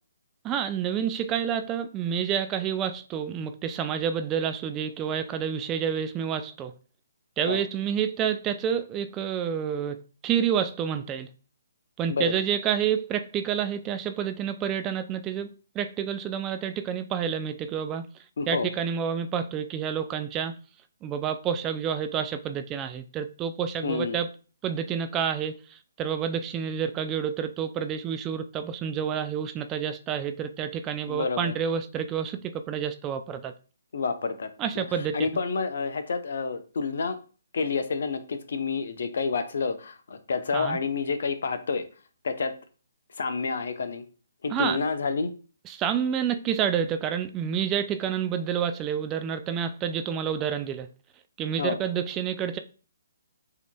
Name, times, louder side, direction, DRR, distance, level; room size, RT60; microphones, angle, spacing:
voice 1, 0.4-6.7 7.4-11.3 12.0-18.1 18.5-20.5 21.0-24.3 24.6-33.5 34.6-35.2 40.5-40.8 44.5-44.8 45.7-50.9 51.4-52.6, right 8 dB, 20° right, 0.3 m, -29 dB
voice 2, 12.1-12.4 18.4-18.7 23.8-24.2 31.1-31.5 33.9-34.5 34.7-34.8 35.1-37.2 37.5-41.8 42.2-42.5 43.2-44.0 44.4-45.3 51.6-51.8, left 4 dB, 65° left, 0.7 m, -29 dB
6.8 x 2.9 x 2.2 m
figure-of-eight pair, 140°, 0 cm